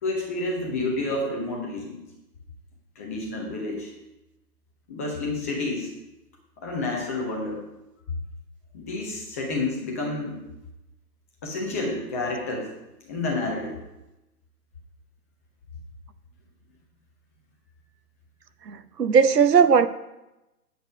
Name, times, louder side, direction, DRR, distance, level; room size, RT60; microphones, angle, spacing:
voice 1, 0.0-2.0 3.0-3.9 4.9-5.9 6.6-7.6 8.7-10.4 11.4-12.7 13.1-13.8, left 2 dB, 10° left, -1 dB, 0.7 m, -29 dB
voice 2, 18.7-19.9, right 6 dB, 75° right, 12 dB, 0.9 m, -18 dB
8.8 x 8.0 x 5.1 m, 0.96 s
figure-of-eight pair, 140°, 49 cm